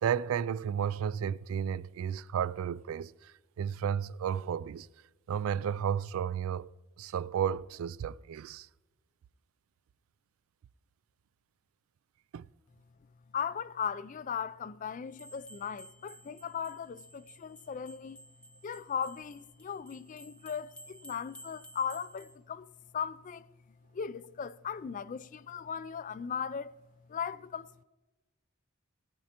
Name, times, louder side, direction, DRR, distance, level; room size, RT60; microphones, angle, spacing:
voice 1, 0.0-4.9 5.3-6.7 7.0-8.7 12.3-12.4, right 8 dB, 75° right, 0.3 m, -33 dB
voice 2, 13.3-18.2 18.6-22.7 22.9-23.5 23.9-26.7 27.1-27.7, left 7 dB, 40° left, 0.3 m, -37 dB
sound 1, 15.1-22.4, right 1 dB, 5° left, 0.7 m, -54 dB
17.0 x 10.5 x 2.9 m
head